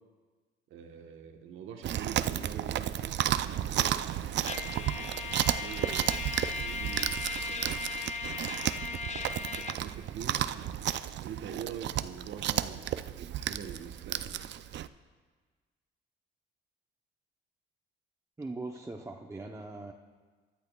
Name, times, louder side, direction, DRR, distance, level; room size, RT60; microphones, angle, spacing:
voice 1, 0.7-3.2 3.6-8.1 8.8-10.5 11.2-14.7, right 7 dB, 85° right, 4 dB, 1.2 m, -45 dB
Chewing mastication, 1.8-14.9, right 11 dB, 65° right, 0.5 m, -33 dB
Trumpet, 4.5-9.8, left 4 dB, 35° left, 0.7 m, -37 dB
voice 2, 18.4-19.9, right 2 dB, 15° right, 1 dB, 0.7 m, -40 dB
23.0 x 12.0 x 2.3 m, 1.4 s
cardioid pair, 90°, 20 cm